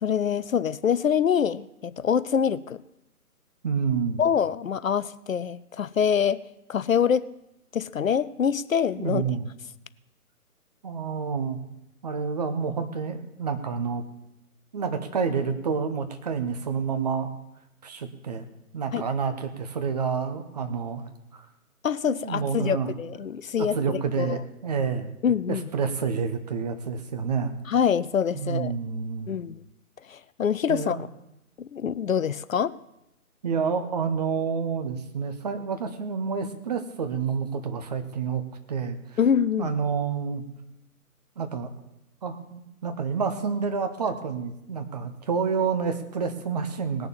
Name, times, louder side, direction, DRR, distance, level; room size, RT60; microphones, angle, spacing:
voice 1, 0.0-2.8 4.2-6.4 6.7-7.2 7.7-9.2 18.9-19.0 21.8-24.4 25.2-25.7 27.7-28.7 29.3-29.6 30.1-31.0 31.6-32.7 39.2-39.7, left 7 dB, 60° left, 17 dB, 0.6 m, -25 dB
voice 2, 3.6-4.2 9.0-9.5 10.8-11.6 12.0-14.0 14.7-17.3 17.8-18.5 18.7-21.0 21.3-21.5 22.1-23.1 23.6-25.1 25.5-27.6 28.3-29.4 30.7-31.0 33.4-38.4 38.7-39.2 39.6-40.4 41.4-41.7 42.2-47.1, right 6 dB, 25° right, 7 dB, 1.0 m, -29 dB
19.0 x 6.9 x 7.3 m, 0.87 s
figure-of-eight pair, 145°, 45 cm